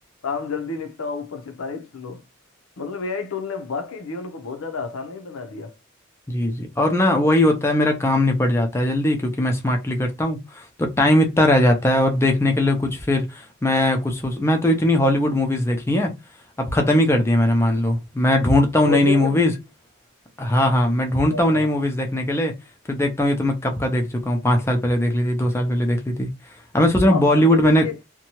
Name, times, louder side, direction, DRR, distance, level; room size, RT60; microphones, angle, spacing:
voice 1, 0.2-2.2 2.8-5.7 18.9-19.4 21.3-21.7 27.1-28.0, left 5 dB, 85° left, 0.6 m, -30 dB
voice 2, 6.3-16.1 16.6-19.5 20.4-22.5 22.9-27.9, left 1 dB, 10° left, 0.5 m, -20 dB
2.7 x 2.2 x 2.9 m
head